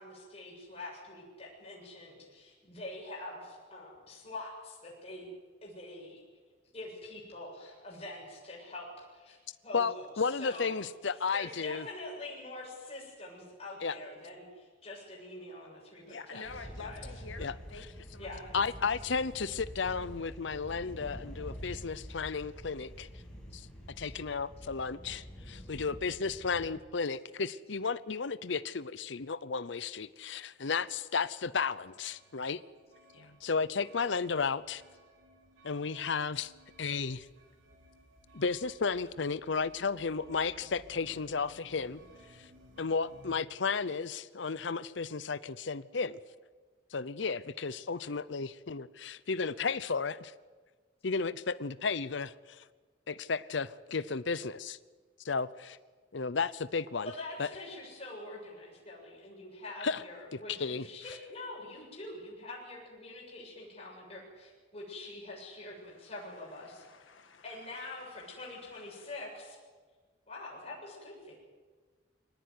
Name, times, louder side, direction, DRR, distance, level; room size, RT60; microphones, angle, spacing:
voice 1, 0.0-5.3 5.6-6.2 6.7-9.4 9.6-10.1 10.4-10.7 11.1-16.4 16.8-17.1 18.2-18.5 57.0-66.8 67.4-69.6 70.3-71.4, left 2 dB, 30° left, -4 dB, 7.5 m, -45 dB
voice 2, 9.7-11.9 13.8-14.0 17.4-17.5 18.5-23.1 23.5-23.7 24.0-32.6 33.4-34.8 35.6-36.5 36.8-37.3 38.3-42.0 42.4-42.5 42.8-46.2 46.9-50.3 51.0-52.6 53.1-54.8 55.2-55.8 56.1-57.1 57.4-57.5 59.8-60.0 60.3-60.9, left 5 dB, 70° left, 16 dB, 0.7 m, -33 dB
voice 3, 16.1-19.3 33.1-33.4 65.9-66.1 66.5-69.1, left 4 dB, 90° left, 6 dB, 1.9 m, -50 dB
sound 1, 16.4-26.8, equal, 5° left, 6.1 m, -47 dB
sound 2, 31.9-43.3, equal, 85° right, 4.7 m, -59 dB
24.0 x 18.5 x 9.6 m, 1.4 s
head